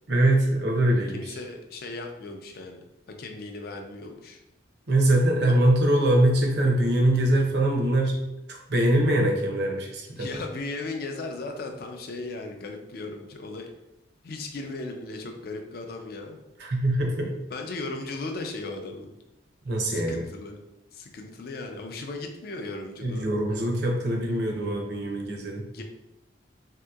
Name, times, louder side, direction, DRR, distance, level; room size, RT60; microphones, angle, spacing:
voice 1, 0.1-1.4 4.9-8.1 8.5-10.3 16.6-17.3 19.7-20.2 23.0-25.6, right 1 dB, 60° right, 1 dB, 0.6 m, -23 dB
voice 2, 1.1-4.4 5.4-5.6 10.2-13.7 14.2-16.4 17.5-19.1 19.9-20.6 20.9-23.2 25.7-25.8, left 2 dB, 50° left, 4 dB, 0.4 m, -37 dB
3.4 x 2.8 x 2.3 m, 0.91 s
head